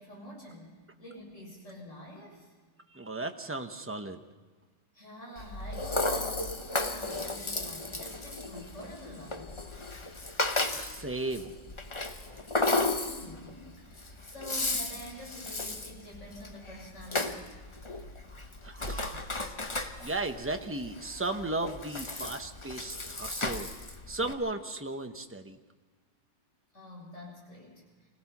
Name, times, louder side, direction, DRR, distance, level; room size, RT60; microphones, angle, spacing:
voice 1, 0.0-2.5 4.9-9.6 13.0-17.5 26.7-28.1, left 1 dB, 40° left, -2 dB, 7.7 m, -47 dB
voice 2, 2.9-4.2 10.8-11.5 18.6-19.2 20.0-23.7 24.1-25.6, right 2 dB, 15° right, 6 dB, 0.4 m, -35 dB
Rattle (instrument), 5.4-24.3, left 2 dB, 20° left, 0.9 m, -35 dB
25.5 x 17.5 x 6.0 m, 1.4 s
omnidirectional pair, 1.9 m